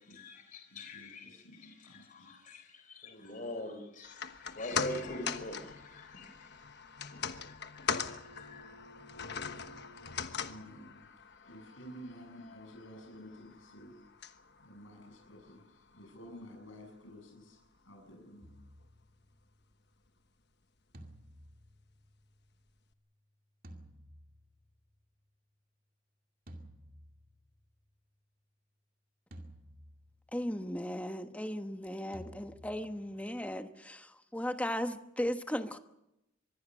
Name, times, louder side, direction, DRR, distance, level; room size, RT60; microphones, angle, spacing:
voice 1, 0.0-6.6 7.0-8.7, left 1 dB, 40° left, 6 dB, 3.9 m, -45 dB
voice 2, 0.7-2.3 10.3-14.1 14.6-18.5, equal, 80° left, 1 dB, 7.6 m, -52 dB
sound 1, 4.0-16.4 16.7-16.8, left 6 dB, 55° left, 1.2 m, -41 dB
sound 2, 18.4-19.7 20.9-22.6 23.6-25.0 26.5-27.8 29.3-30.5 32.1-33.6, right 1 dB, 45° right, 2.4 m, -54 dB
voice 3, 30.3-35.8, equal, 5° left, 8 dB, 1.1 m, -36 dB
25.0 x 21.0 x 6.4 m, 0.87 s
head